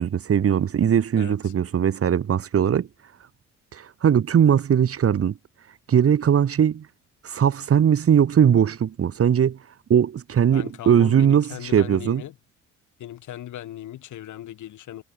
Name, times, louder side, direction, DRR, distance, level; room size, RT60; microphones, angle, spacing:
voice 1, 0.0-2.9 3.7-5.3 5.9-6.9 7.2-9.6 9.9-12.2, right 8 dB, 50° right, 1.7 m, -20 dB
voice 2, 1.2-1.5 10.5-12.4 13.0-15.0, left 12 dB, 75° left, 5.3 m, -38 dB
cardioid pair, 90°, 30 cm